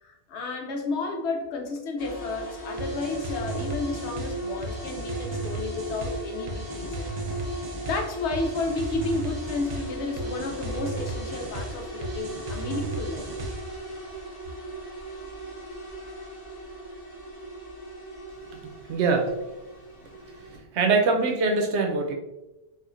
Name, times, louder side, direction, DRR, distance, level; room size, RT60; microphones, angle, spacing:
voice 1, 0.0-7.1 7.8-13.3, left 3 dB, 80° left, 2 dB, 0.9 m, -32 dB
sound 1, 2.0-20.6, right 1 dB, 35° left, 1.1 m, -38 dB
sound 2, 2.8-13.8, right 2 dB, 50° right, 0.5 m, -36 dB
voice 2, 18.9-19.3 20.5-22.1, right 4 dB, 80° right, 3 dB, 0.9 m, -23 dB
4.3 x 2.5 x 2.5 m, 0.98 s
omnidirectional pair, 1.1 m